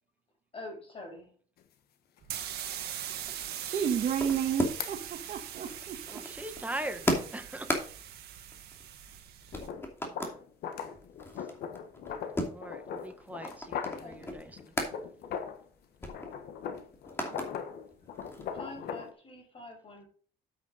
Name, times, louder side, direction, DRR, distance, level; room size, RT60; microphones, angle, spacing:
voice 1, 0.5-1.3 14.0-14.5 18.5-20.1, left 2 dB, 35° left, 1 dB, 5.7 m, -45 dB
sound 1, 1.6-1.7 2.2-2.3 4.8-5.0 9.5-15.7 16.0-19.1, left 7 dB, 70° left, 1.3 m, -40 dB
sound 2, 2.2-9.7, right 10 dB, 70° right, 1.9 m, -41 dB
sound 3, 3.1-5.1 5.3-9.2 9.5-10.4 10.8-15.0 15.3-15.5 15.7-17.5 17.9-18.7, left 1 dB, 15° left, 2.7 m, -37 dB
voice 2, 3.6-6.2, right 8 dB, 50° right, 2 dB, 1.5 m, -32 dB
voice 3, 6.1-7.7 12.5-15.0, right 1 dB, 10° right, 8 dB, 1.4 m, -41 dB
8.7 x 8.3 x 4.1 m, 0.43 s
cardioid pair, 110°, 17 cm